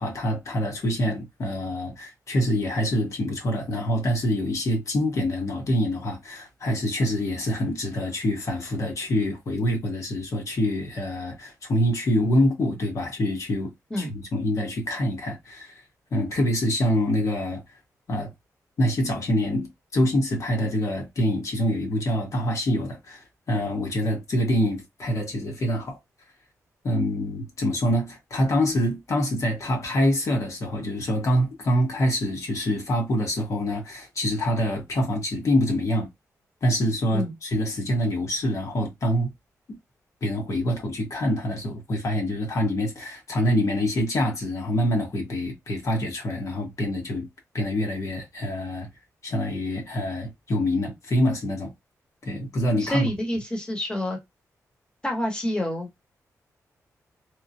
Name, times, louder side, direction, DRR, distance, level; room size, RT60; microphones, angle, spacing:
voice 1, 0.0-13.7 14.0-15.8 16.1-17.6 18.1-18.3 18.8-26.0 26.8-36.1 36.6-39.3 39.7-39.8 40.2-47.3 47.5-48.9 49.2-51.7 52.2-53.1, equal, 55° left, 1.1 m, -25 dB
voice 2, 52.8-54.2 55.0-56.0, equal, 15° left, 1.0 m, -28 dB
3.0 x 2.2 x 2.6 m
cardioid pair, 95°, 6 cm